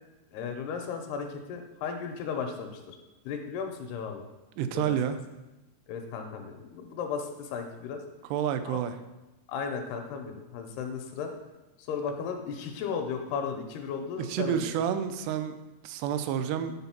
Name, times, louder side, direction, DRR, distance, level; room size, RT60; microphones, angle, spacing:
voice 1, 0.3-3.0 3.3-4.3 4.7-5.0 5.9-8.0 8.7-8.8 9.5-11.3 11.8-14.7, left 6 dB, 80° left, 4 dB, 2.6 m, -35 dB
voice 2, 4.6-5.2 8.3-9.0 14.2-15.6 15.8-16.7, right 9 dB, 85° right, 9 dB, 2.6 m, -29 dB
9.5 x 3.9 x 5.8 m, 1.0 s
omnidirectional pair, 4.8 m